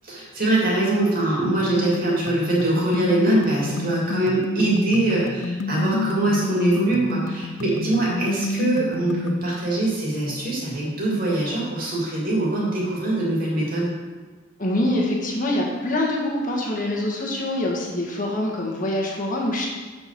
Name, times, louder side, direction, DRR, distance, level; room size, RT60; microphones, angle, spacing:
voice 1, 0.0-13.9, right 2 dB, 45° right, -5 dB, 3.1 m, -23 dB
Muster Loop, 1.4-9.4, left 3 dB, 70° left, 0.5 m, -29 dB
voice 2, 14.6-19.7, left 1 dB, 40° left, -2 dB, 1.7 m, -25 dB
7.9 x 6.4 x 6.0 m, 1.3 s
head